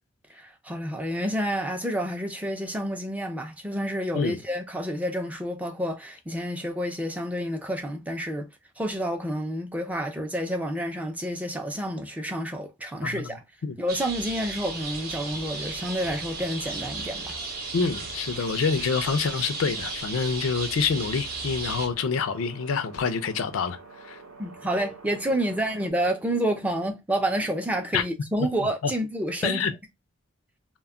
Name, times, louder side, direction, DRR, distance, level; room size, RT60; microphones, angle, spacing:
voice 1, 0.3-8.5 8.8-13.4 13.8-17.4 24.4-29.6, equal, 5° right, 0.4 m, -29 dB
sound 1, 13.9-21.9, right 3 dB, 45° right, 0.6 m, -35 dB
sound 2, 14.7-25.9, right 4 dB, 85° right, 0.8 m, -48 dB
voice 2, 17.7-24.2 27.9-28.0 28.6-28.9 29.4-29.7, left 5 dB, 85° left, 0.4 m, -27 dB
2.2 x 2.1 x 3.5 m
head